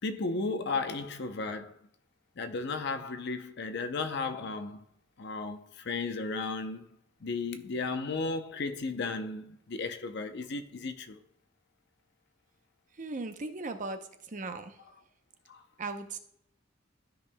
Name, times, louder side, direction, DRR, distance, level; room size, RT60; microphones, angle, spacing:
voice 1, 0.0-1.8 2.4-4.9 5.2-6.8 7.2-11.2 15.5-15.6, left 3 dB, 60° left, 0.6 m, -34 dB
voice 2, 13.0-14.8 15.8-16.2, right 3 dB, 40° right, 0.7 m, -38 dB
12.5 x 5.3 x 2.2 m
head